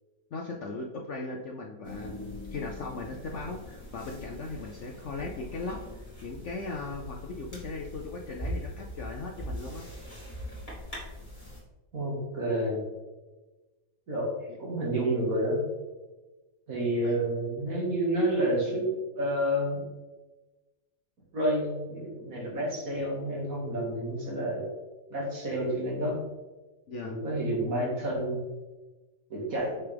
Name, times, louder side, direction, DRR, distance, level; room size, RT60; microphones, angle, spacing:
voice 1, 0.3-9.9 14.5-14.6 17.0-17.2 26.9-27.2, left 3 dB, 60° left, 2 dB, 0.8 m, -38 dB
sound 1, 1.8-11.6, equal, 20° left, 2.5 m, -42 dB
voice 2, 11.9-12.8 14.1-14.3 14.6-15.6 16.7-18.9 19.1-19.8 21.3-24.7 25.1-26.2 27.0-28.4 29.3-29.8, right 1 dB, 55° right, -3 dB, 2.4 m, -29 dB
6.5 x 5.9 x 3.5 m, 1.2 s
omnidirectional pair, 1.8 m